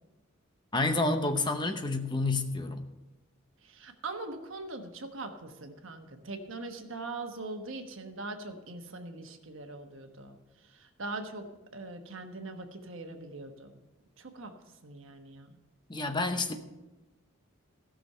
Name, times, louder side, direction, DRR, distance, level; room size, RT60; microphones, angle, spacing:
voice 1, 0.7-2.9 15.9-16.6, left 2 dB, 20° left, 7 dB, 0.8 m, -29 dB
voice 2, 3.6-10.4 10.6-11.5 11.7-13.7 14.2-14.5 14.8-15.6, right 2 dB, 65° right, 5 dB, 1.2 m, -41 dB
15.5 x 6.3 x 5.5 m, 1.0 s
head